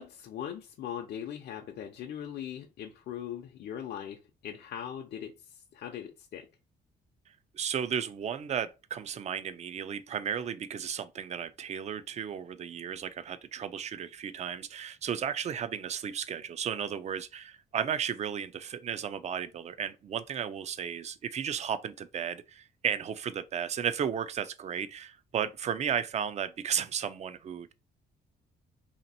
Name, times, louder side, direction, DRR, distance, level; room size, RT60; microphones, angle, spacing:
voice 1, 0.0-4.2 4.4-5.3 5.7-6.5, left 9 dB, 70° left, 0.6 m, -40 dB
voice 2, 7.5-27.7, right 8 dB, 40° right, 0.4 m, -34 dB
2.9 x 2.8 x 4.2 m
cardioid pair, 140°, 18 cm